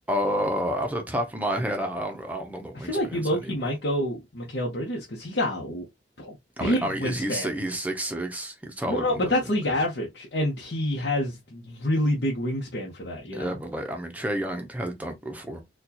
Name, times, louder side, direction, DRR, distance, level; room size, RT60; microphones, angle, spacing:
voice 1, 0.1-3.5 6.6-9.3 13.3-15.6, equal, 10° right, 0.6 m, -30 dB
voice 2, 2.7-5.9 6.2-6.3 6.6-7.5 8.9-13.6, left 1 dB, 70° left, 0.9 m, -27 dB
4.2 x 2.3 x 2.8 m
head